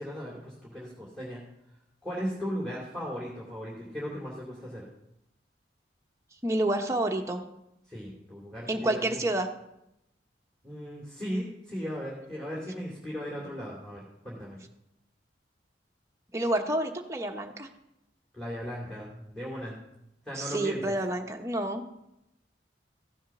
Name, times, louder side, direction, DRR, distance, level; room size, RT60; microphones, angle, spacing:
voice 1, 0.0-1.4 2.0-4.9 7.9-9.2 10.6-14.6 18.3-19.8 20.2-20.9, equal, 5° left, -6 dB, 2.7 m, -37 dB
voice 2, 6.4-7.4 8.7-9.5 16.3-17.7 20.3-21.9, right 1 dB, 15° right, 3 dB, 1.0 m, -29 dB
15.0 x 7.3 x 6.0 m, 0.84 s
head